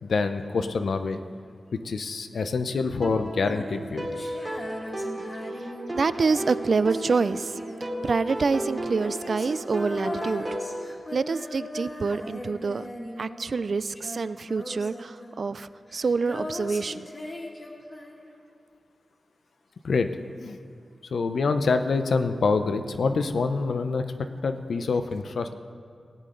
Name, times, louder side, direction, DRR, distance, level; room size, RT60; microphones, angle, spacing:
voice 1, 0.0-1.2 1.8-4.1 19.8-20.1 20.4-20.6 21.1-24.1 24.4-25.5, left 4 dB, 80° left, 8 dB, 0.6 m, -26 dB
sound 1, 3.0-10.7, right 1 dB, 25° right, 2.2 m, -34 dB
Female singing, 3.3-13.7 13.9-18.4, left 1 dB, 30° left, 1.5 m, -39 dB
voice 2, 5.9-10.5 11.1-12.8 13.2-17.1, right 4 dB, 55° right, 15 dB, 0.3 m, -27 dB
17.5 x 9.4 x 3.9 m, 2.3 s
wide cardioid pair, 130°, 0 cm